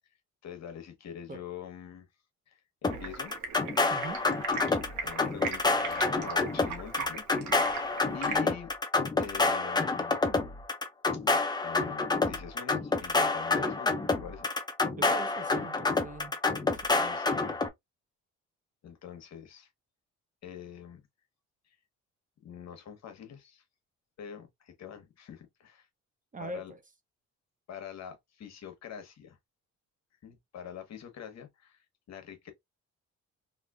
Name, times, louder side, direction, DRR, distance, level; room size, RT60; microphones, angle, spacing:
voice 1, 0.4-2.1 2.5-3.3 5.0-7.8 8.1-8.7 9.2-10.2 11.6-14.5 17.0-17.6 18.8-19.7 20.4-21.0 21.6-21.8 22.4-23.6 24.2-25.9 26.4-26.7 27.7-29.4 30.2-32.5, left 8 dB, 60° left, 1.1 m, -45 dB
sound 1, 2.8-17.7, left 3 dB, 15° left, 0.5 m, -28 dB
Stream, 2.9-8.4, right 5 dB, 70° right, 1.1 m, -39 dB
voice 2, 3.9-4.2 15.0-16.4 16.7-17.1 26.3-26.8, right 2 dB, 25° right, 0.7 m, -42 dB
3.1 x 2.6 x 2.3 m
cardioid pair, 90°, 30 cm